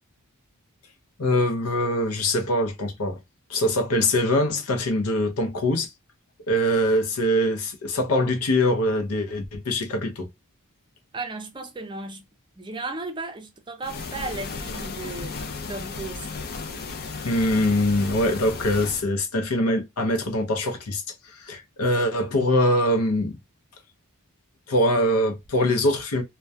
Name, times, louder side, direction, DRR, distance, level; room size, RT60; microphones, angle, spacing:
voice 1, 1.2-3.2 3.5-5.9 6.5-10.3 17.2-23.4 24.7-26.2, left 1 dB, 85° left, 0.7 m, -23 dB
voice 2, 11.1-12.3 12.6-15.4 15.7-16.4, right 3 dB, 20° right, 0.5 m, -35 dB
sound 1, 13.8-19.0, left 4 dB, 45° left, 0.4 m, -34 dB
2.3 x 2.2 x 2.5 m
head